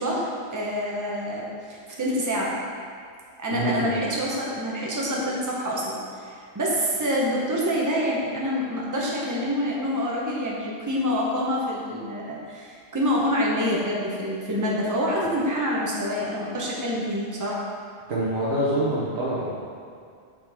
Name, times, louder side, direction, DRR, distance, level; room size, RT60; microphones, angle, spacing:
voice 1, 0.0-2.5 3.4-17.6, equal, 15° right, -5 dB, 0.8 m, -27 dB
voice 2, 3.5-4.0 18.1-19.6, right 1 dB, 55° right, -7 dB, 1.1 m, -26 dB
5.8 x 5.2 x 3.6 m, 2.3 s
omnidirectional pair, 1.3 m